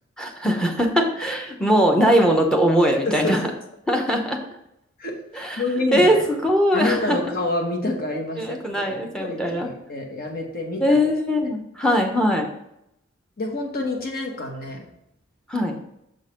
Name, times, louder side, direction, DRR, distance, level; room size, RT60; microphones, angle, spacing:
voice 1, 0.2-3.4 3.9-4.4 5.3-5.6 5.9-7.3 8.4-9.7 10.8-12.5 15.5-15.8, equal, 5° left, 2 dB, 0.8 m, -21 dB
voice 2, 3.0-3.4 5.0-6.2 6.7-11.0 13.4-14.9, left 2 dB, 45° left, 2 dB, 1.2 m, -28 dB
6.5 x 4.0 x 5.1 m, 0.80 s
head